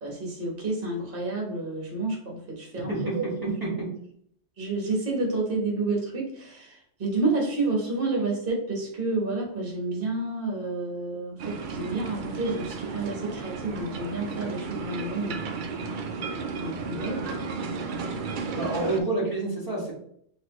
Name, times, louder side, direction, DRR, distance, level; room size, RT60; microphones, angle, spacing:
voice 1, 0.0-3.2 4.6-15.5 16.6-17.4, right 3 dB, 45° right, -1 dB, 1.4 m, -30 dB
voice 2, 2.9-3.7 18.5-19.9, right 2 dB, 15° right, -5 dB, 1.5 m, -28 dB
sound 1, 11.4-19.0, right 4 dB, 65° right, 0.5 m, -33 dB
5.8 x 2.8 x 3.0 m, 0.69 s
omnidirectional pair, 1.3 m